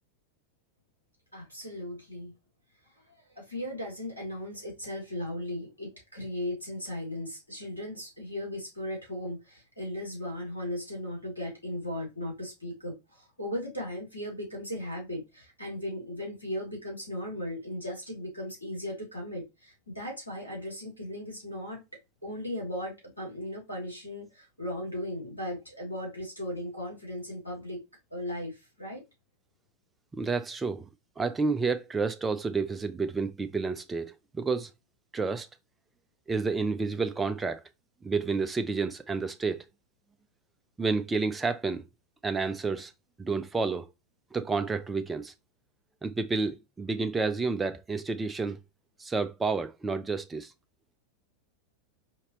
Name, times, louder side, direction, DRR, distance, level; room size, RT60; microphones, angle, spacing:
voice 1, 1.3-2.3 3.3-21.8 22.2-27.8 28.1-29.0, left 1 dB, 85° left, 2.6 m, -37 dB
voice 2, 30.1-30.9 31.2-34.7 35.1-35.5 36.3-37.6 38.0-39.6 40.8-41.8 42.2-42.9 43.2-43.9 44.3-45.3 46.0-48.6 49.0-50.5, right 4 dB, 15° right, 0.4 m, -30 dB
5.0 x 2.8 x 2.9 m
figure-of-eight pair, 90°, 0 cm